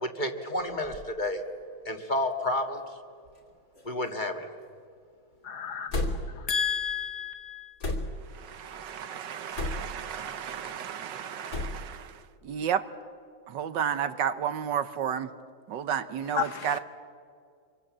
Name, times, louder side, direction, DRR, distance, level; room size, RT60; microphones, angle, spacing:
voice 1, 0.0-1.4 1.9-2.8 3.8-4.5, left 1 dB, 25° left, 5 dB, 1.8 m, -30 dB
sound 1, 0.6-1.1 1.9-2.0 3.3-3.5 3.8-4.3 5.9-6.5 7.8-8.3 9.5-10.1 11.5-11.9, left 2 dB, 45° left, 3.2 m, -33 dB
voice 2, 5.4-5.9 6.5-7.7 16.3-16.8, left 7 dB, 60° left, 10 dB, 1.2 m, -31 dB
voice 3, 8.3-12.8 13.5-15.3 15.7-16.8, right 8 dB, 70° right, 12 dB, 1.5 m, -32 dB
26.5 x 24.5 x 7.5 m, 2.3 s
omnidirectional pair, 2.1 m